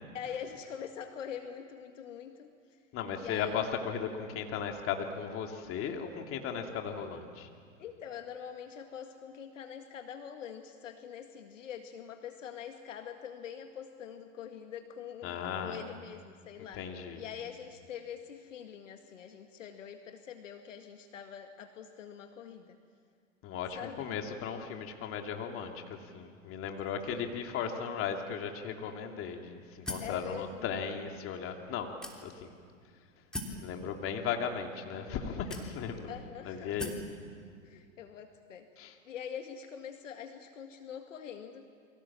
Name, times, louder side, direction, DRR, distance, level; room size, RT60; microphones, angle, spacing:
voice 1, 0.1-2.5 3.2-3.7 7.8-16.8 17.2-22.8 23.7-24.2 27.1-27.3 30.0-30.7 36.1-36.9 37.6-38.7 39.0-41.7, left 8 dB, 70° left, 6 dB, 1.9 m, -44 dB
voice 2, 2.9-7.5 15.2-15.8 16.6-17.2 23.4-31.9 32.2-32.5 33.5-36.1 36.4-36.9 38.8-38.9, left 7 dB, 35° left, 3 dB, 2.9 m, -36 dB
sound 1, 29.9-30.2 31.0-31.1 32.0-32.5 33.3-33.6 34.6-34.7 35.5-36.0 36.8-37.1, left 1 dB, ahead, 3.3 m, -39 dB
29.5 x 23.5 x 7.5 m, 2.1 s
figure-of-eight pair, 100°, 40 cm